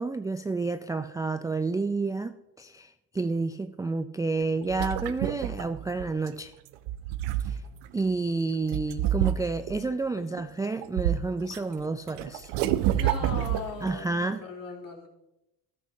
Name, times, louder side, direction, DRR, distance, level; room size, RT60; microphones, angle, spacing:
voice 1, 0.0-6.5 7.4-7.6 7.9-12.5 13.8-14.4, right 3 dB, 10° right, 10 dB, 0.4 m, -30 dB
sound 1, 4.4-6.3 6.7-7.9 8.7-9.8 10.4-11.6 11.8-14.0, right 12 dB, 65° right, 0.8 m, -28 dB
voice 2, 10.2-10.5 12.9-15.1, left 4 dB, 45° left, 0 dB, 3.3 m, -39 dB
14.0 x 12.0 x 2.8 m, 0.90 s
hypercardioid pair, 65°, 44 cm